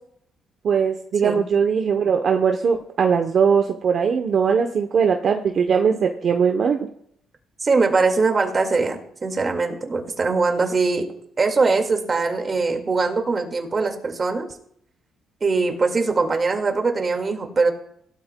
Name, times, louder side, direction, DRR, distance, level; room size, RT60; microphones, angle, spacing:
voice 1, 0.6-6.9, right 6 dB, 55° right, 4 dB, 0.8 m, -20 dB
voice 2, 7.6-11.1 11.4-14.5 15.4-17.7, right 4 dB, 35° right, 4 dB, 2.0 m, -21 dB
16.5 x 12.5 x 2.2 m, 0.70 s
cardioid pair, 90°, 0 cm